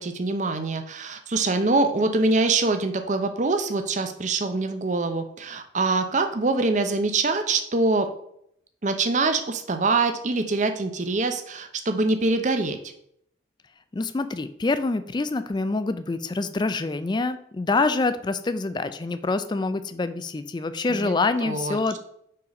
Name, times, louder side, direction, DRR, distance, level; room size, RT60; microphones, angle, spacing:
voice 1, 0.0-8.1 8.8-12.8 20.9-21.1 21.4-22.0, right 3 dB, 40° right, 7 dB, 0.6 m, -24 dB
voice 2, 13.9-22.0, left 3 dB, 20° left, 12 dB, 0.3 m, -26 dB
5.4 x 4.0 x 5.2 m, 0.71 s
head